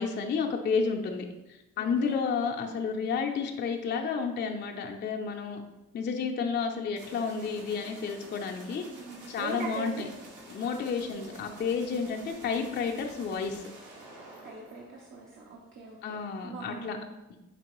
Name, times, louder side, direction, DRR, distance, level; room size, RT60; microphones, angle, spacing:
voice 1, 0.0-5.6 5.9-8.9 9.3-10.1 10.5-13.6 16.0-17.0, left 5 dB, 35° left, 2 dB, 0.4 m, -31 dB
sound 1, 6.9-15.6, right 2 dB, 90° right, 1.1 m, -49 dB
voice 2, 9.0-10.1 14.4-17.1, right 4 dB, 40° right, -1 dB, 0.6 m, -41 dB
4.5 x 2.8 x 3.0 m, 0.98 s
cardioid pair, 90°, 30 cm